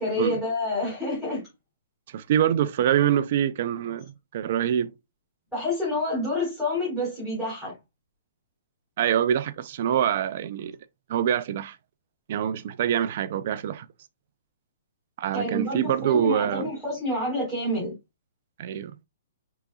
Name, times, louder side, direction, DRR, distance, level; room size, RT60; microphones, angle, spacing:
voice 1, 0.0-1.5 5.5-7.7 15.3-17.9, left 1 dB, ahead, 4.1 m, -28 dB
voice 2, 2.1-4.9 9.0-10.7 11.1-11.8 12.3-13.9 15.2-16.7 18.6-19.0, right 10 dB, 40° right, 0.5 m, -25 dB
10.0 x 4.0 x 2.4 m
hypercardioid pair, 175°, 0 cm